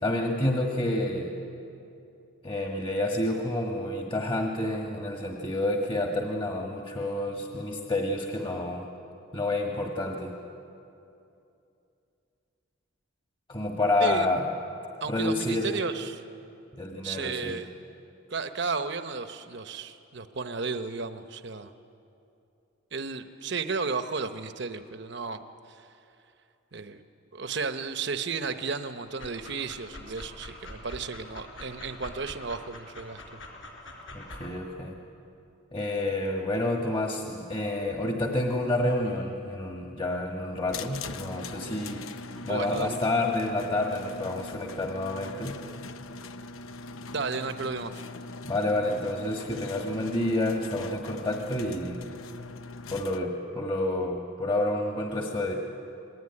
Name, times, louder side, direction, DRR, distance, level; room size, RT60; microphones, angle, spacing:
voice 1, 0.0-1.3 2.4-8.9 9.3-10.3 13.5-14.5 15.1-15.8 16.7-17.6 34.1-35.0 35.7-45.6 48.4-52.0 52.9-55.5, left 1 dB, 25° left, 1 dB, 1.6 m, -29 dB
voice 2, 15.0-16.2 17.0-17.7 18.3-21.7 22.9-25.4 25.7-25.9 26.7-27.0 27.3-33.4 42.5-43.0 47.1-48.0, right 4 dB, 55° right, 8 dB, 0.9 m, -33 dB
Dog, 29.1-34.5, left 1 dB, 65° left, 4.5 m, -45 dB
sound 1, 40.7-53.2, left 3 dB, 80° left, 1.0 m, -41 dB
26.0 x 21.0 x 9.8 m, 2.7 s
head